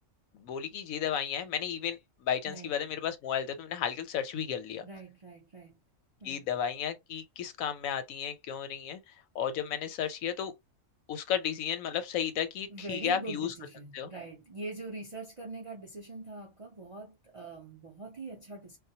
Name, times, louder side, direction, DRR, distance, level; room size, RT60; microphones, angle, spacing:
voice 1, 0.3-4.9 6.2-9.0 9.3-10.5 11.1-13.5 13.9-14.1, left 8 dB, 85° left, 1.0 m, -33 dB
voice 2, 4.8-5.8 6.2-6.5 12.7-18.8, right 3 dB, 50° right, 0.4 m, -43 dB
2.3 x 2.1 x 2.7 m
omnidirectional pair, 1.4 m